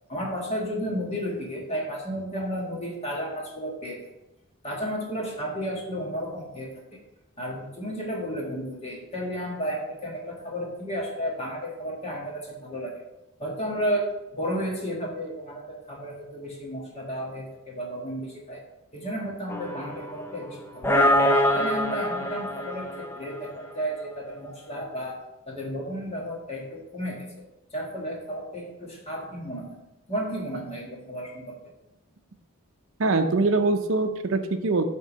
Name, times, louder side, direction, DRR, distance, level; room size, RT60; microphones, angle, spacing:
voice 1, 0.1-4.0 4.6-6.7 7.4-12.9 13.4-14.1 14.3-18.6 18.9-21.0 21.5-22.9 23.2-25.2 25.5-27.2 27.7-29.8 30.1-31.6, equal, 30° left, -2 dB, 1.6 m, -32 dB
sound 1, 19.5-20.4 20.8-23.6, left 1 dB, 10° left, 0.5 m, -24 dB
voice 2, 33.0-34.8, right 3 dB, 65° right, 7 dB, 0.6 m, -23 dB
7.8 x 3.7 x 5.2 m, 0.92 s
head